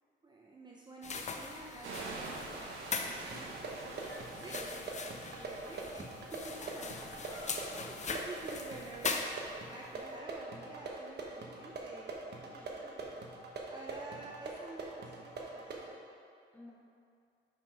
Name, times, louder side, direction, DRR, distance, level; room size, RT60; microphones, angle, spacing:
voice 1, 0.2-2.7 4.4-4.6 5.7-6.9 7.2-9.4 9.7-12.2 13.7-16.0, right 2 dB, 20° right, -2 dB, 0.7 m, -49 dB
sound 1, 1.0-9.8, left 4 dB, 35° left, 0.6 m, -41 dB
sound 2, 1.8-7.3, right 3 dB, 90° right, 1.0 m, -46 dB
voice 2, 3.2-3.5 4.0-5.7 6.8-7.9 12.5-13.1 13.6-13.8 16.5-16.7, left 1 dB, 10° left, -4 dB, 1.6 m, -55 dB
sound 3, 3.3-15.9, right 3 dB, 60° right, 1.1 m, -44 dB
5.9 x 5.3 x 5.0 m, 2.3 s
cardioid pair, 90°, 20 cm